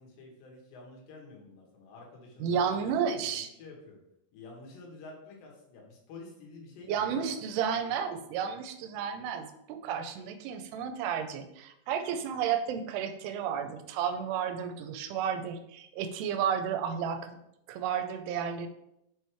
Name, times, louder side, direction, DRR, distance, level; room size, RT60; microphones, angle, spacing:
voice 1, 0.0-4.0 4.3-7.4, left 3 dB, 85° left, -1 dB, 3.6 m, -50 dB
voice 2, 2.4-3.5 6.9-17.4 17.7-18.7, right 7 dB, 85° right, 8 dB, 2.6 m, -32 dB
6.9 x 3.3 x 4.6 m, 0.80 s
omnidirectional pair, 4.8 m